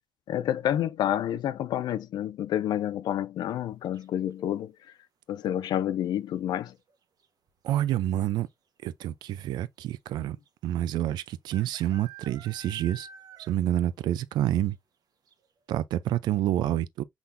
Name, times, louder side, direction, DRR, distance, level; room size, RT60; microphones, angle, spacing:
voice 1, 0.3-4.7 5.3-6.7, left 11 dB, 80° left, 0.4 m, -29 dB
sound 1, 3.9-4.4 6.2-6.6 6.9-7.0 7.2-7.7 8.5-8.6 8.8-8.9 10.5-10.6 11.5-13.8 14.1-14.2 14.7-14.8 15.3-15.4, right 4 dB, 65° right, 0.9 m, -49 dB
voice 2, 7.6-8.5 8.8-10.4 10.6-13.1 13.4-14.8 15.7-17.0, right 12 dB, 90° right, 0.4 m, -28 dB
6.1 x 3.4 x 2.5 m
cardioid pair, 60°, 7 cm